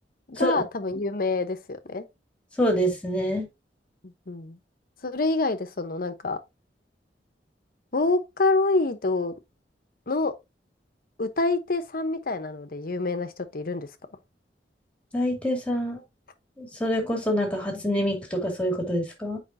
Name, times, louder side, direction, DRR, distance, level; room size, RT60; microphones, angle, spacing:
voice 1, 0.3-2.0 4.0-4.6 5.0-6.4 7.9-9.3 10.1-10.3 11.2-13.9, left 3 dB, 55° left, 0.9 m, -26 dB
voice 2, 2.6-3.5 15.1-16.0 16.6-19.4, equal, 5° left, 2.4 m, -26 dB
7.8 x 5.0 x 2.7 m
head